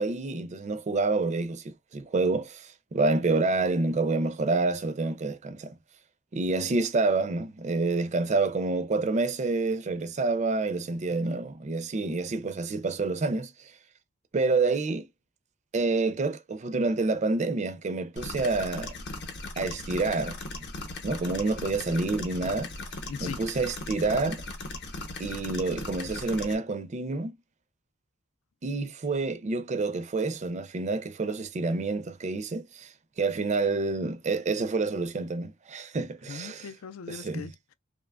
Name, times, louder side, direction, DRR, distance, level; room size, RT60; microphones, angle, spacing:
voice 1, 0.0-5.7 6.3-13.7 14.3-15.1 15.7-18.9 19.6-20.4 21.0-22.7 23.2-24.4 25.2-27.4 28.6-36.7 37.1-37.5, right 3 dB, 35° right, 0.4 m, -28 dB
sound 1, 18.2-26.5, left 2 dB, 55° left, 0.7 m, -38 dB
voice 2, 23.1-23.4 36.3-37.7, left 6 dB, 80° left, 0.4 m, -39 dB
2.9 x 2.2 x 2.2 m
head